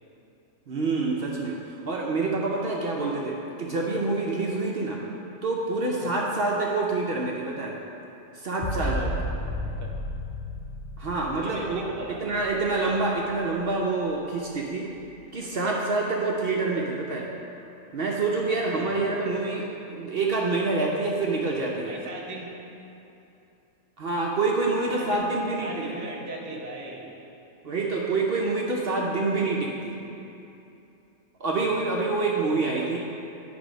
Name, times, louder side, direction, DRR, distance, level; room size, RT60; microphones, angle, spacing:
voice 1, 0.7-1.6 1.9-5.0 5.4-7.7 8.3-9.1 11.0-14.9 15.3-17.3 17.9-21.9 24.0-26.1 27.6-29.9 31.4-33.0, right 3 dB, 55° right, -2 dB, 0.8 m, -27 dB
sound 1, 8.6-14.1 14.5-15.1, left 1 dB, 40° left, 0.5 m, -34 dB
voice 2, 8.8-9.1 9.7-9.9 11.4-12.2 18.4-19.4 21.8-22.5 24.9-25.2 25.6-27.1 32.2-33.0, right 2 dB, 20° right, -2 dB, 0.6 m, -39 dB
9.9 x 3.4 x 5.1 m, 2.8 s
omnidirectional pair, 1.4 m